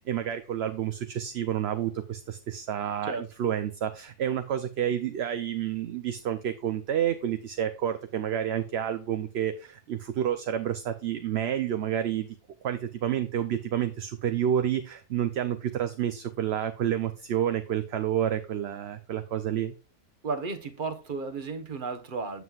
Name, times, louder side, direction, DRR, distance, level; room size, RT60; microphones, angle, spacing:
voice 1, 0.0-12.3 12.6-19.7, right 10 dB, 65° right, 0.8 m, -29 dB
voice 2, 20.2-22.4, right 4 dB, 45° right, 1.2 m, -33 dB
8.1 x 7.5 x 2.4 m
omnidirectional pair, 1.3 m